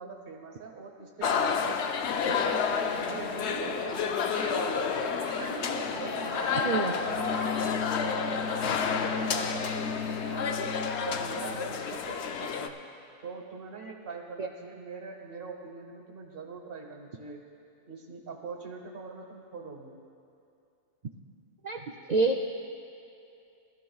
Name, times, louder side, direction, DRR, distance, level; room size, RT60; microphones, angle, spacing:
voice 1, 0.0-1.8 2.2-5.6 6.0-10.7 11.0-12.8 13.2-17.5 17.9-20.0, right 4 dB, 45° right, 0 dB, 1.3 m, -43 dB
sound 1, 1.2-12.7, left 6 dB, 65° left, 0.8 m, -30 dB
sound 2, 3.5-7.9, right 1 dB, 25° right, 1.2 m, -40 dB
sound 3, 7.0-11.7, left 5 dB, 80° left, 2.6 m, -37 dB
voice 2, 22.1-22.5, right 3 dB, 70° right, 3 dB, 0.4 m, -26 dB
20.0 x 13.0 x 2.3 m, 2.5 s
omnidirectional pair, 1.4 m